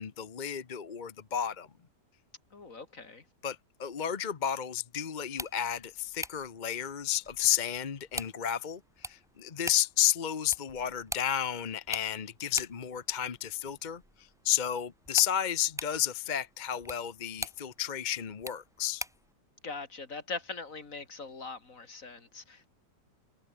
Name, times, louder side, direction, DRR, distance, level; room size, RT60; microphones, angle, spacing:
voice 1, 0.0-1.7 3.4-19.0, left 10 dB, 35° left, 0.9 m, -32 dB
voice 2, 2.5-3.2 19.6-22.7, left 4 dB, 50° left, 3.0 m, -41 dB
sound 1, 5.2-19.3, equal, ahead, 4.8 m, -45 dB
omnidirectional pair, 1.8 m